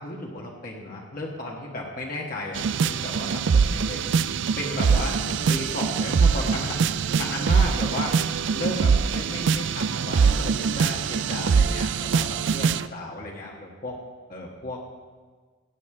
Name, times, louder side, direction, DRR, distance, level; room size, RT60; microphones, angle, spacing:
voice 1, 0.0-4.1 4.6-6.8 7.1-8.2 8.5-14.0 14.3-15.0, left 1 dB, 45° left, -1 dB, 1.5 m, -34 dB
sound 1, 2.5-12.9, right 6 dB, 60° right, 0.4 m, -23 dB
15.5 x 5.5 x 8.8 m, 1.5 s
head